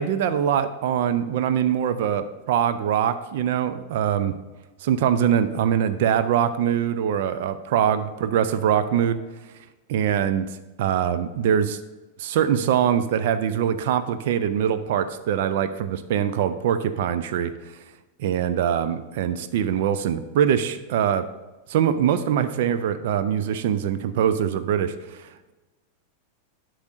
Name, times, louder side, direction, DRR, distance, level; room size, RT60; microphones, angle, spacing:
voice 1, 0.0-4.4 4.8-9.2 9.9-10.5 10.8-11.8 12.2-17.5 18.2-21.3 21.7-25.2, right 9 dB, 55° right, 11 dB, 0.4 m, -23 dB
11.5 x 6.2 x 2.6 m, 1.2 s
figure-of-eight pair, 90°, 0 cm